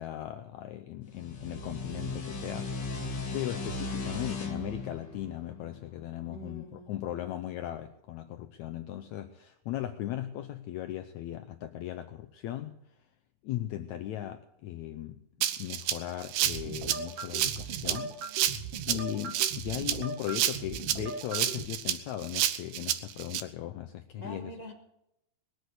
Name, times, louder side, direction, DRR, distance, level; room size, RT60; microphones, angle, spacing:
voice 1, 0.0-2.9 3.3-12.7 13.4-15.2 15.6-18.2 18.9-24.5, left 13 dB, 75° left, 7 dB, 1.7 m, -38 dB
sound 1, 1.1-6.4, left 3 dB, 40° left, 2.1 m, -37 dB
voice 2, 6.2-6.9 24.1-24.7, equal, 20° right, 0 dB, 1.1 m, -44 dB
Rattle (instrument), 15.4-23.4, right 12 dB, 80° right, 2.4 m, -30 dB
sound 2, 16.5-21.6, right 5 dB, 50° right, 2.2 m, -40 dB
20.5 x 8.0 x 8.2 m, 0.81 s
omnidirectional pair, 3.9 m